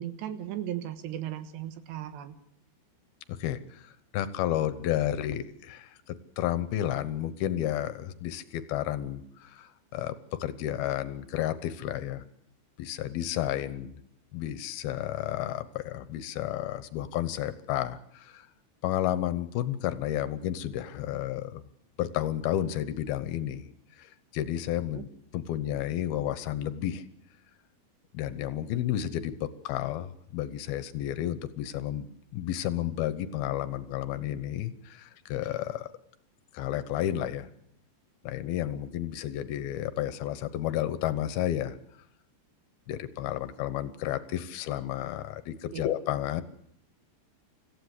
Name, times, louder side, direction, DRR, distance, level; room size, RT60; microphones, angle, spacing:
voice 1, 0.0-2.4 24.9-25.0 45.7-45.8, right 11 dB, 85° right, 10 dB, 3.5 m, -36 dB
voice 2, 3.3-12.2 12.8-14.0 14.3-18.5 18.8-21.6 22.0-23.7 24.0-25.1 25.3-27.1 28.1-32.1 32.3-35.9 36.5-37.5 38.2-41.8 42.9-46.4, left 12 dB, 75° left, 13 dB, 2.6 m, -32 dB
25.5 x 15.0 x 8.1 m, 0.69 s
omnidirectional pair, 4.9 m